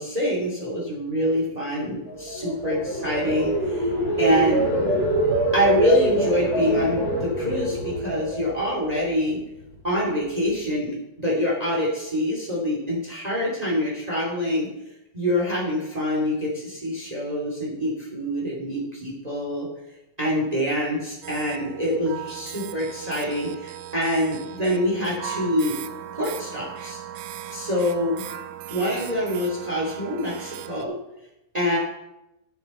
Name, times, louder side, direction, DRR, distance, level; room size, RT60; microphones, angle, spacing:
voice 1, 0.0-3.9 4.2-4.7 5.5-9.4 9.8-14.7 15.1-19.7 20.2-25.7 26.1-27.0 27.5-28.2 28.7-31.0 31.5-31.8, equal, 25° right, -3 dB, 0.7 m, -25 dB
sound 1, 2.0-9.2 9.6-10.0, right 1 dB, 25° left, 2.3 m, -25 dB
sound 2, 21.2-30.8, right 11 dB, 85° right, 3.0 m, -38 dB
14.0 x 7.0 x 4.3 m, 0.89 s
omnidirectional pair, 5.8 m